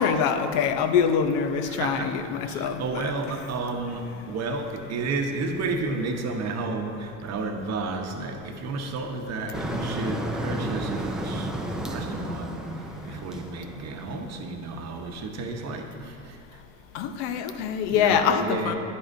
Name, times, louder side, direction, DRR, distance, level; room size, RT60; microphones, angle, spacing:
voice 1, 0.0-3.1 16.9-18.7, left 7 dB, 60° left, 9 dB, 0.8 m, -24 dB
voice 2, 1.6-2.1 2.4-12.5 12.9-16.4 17.9-18.7, right 3 dB, 35° right, 4 dB, 0.9 m, -32 dB
Motor vehicle (road), 9.5-14.5, right 1 dB, ahead, 0.4 m, -32 dB
10.5 x 9.7 x 2.6 m, 2.7 s
supercardioid pair, 110°, 45 cm